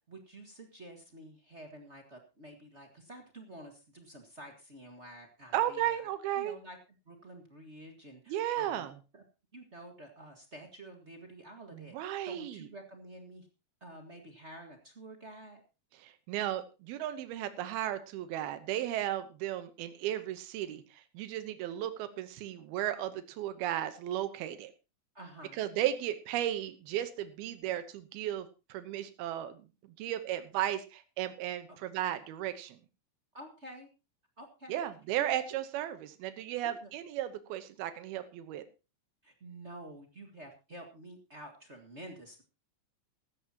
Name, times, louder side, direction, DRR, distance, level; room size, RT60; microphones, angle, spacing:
voice 1, 0.1-6.1 6.4-6.8 7.0-8.9 9.1-9.2 9.5-13.5 13.8-15.6 25.1-25.6 33.3-33.9 34.4-34.8 36.6-36.9 39.2-42.4, right 1 dB, 40° right, 3 dB, 0.9 m, -49 dB
voice 2, 5.5-6.6 8.3-8.9 11.7-12.7 16.0-24.7 25.6-29.7 30.0-32.8 34.7-38.6, right 12 dB, 90° right, 11 dB, 2.9 m, -35 dB
15.5 x 13.5 x 2.9 m, 0.30 s
omnidirectional pair, 4.3 m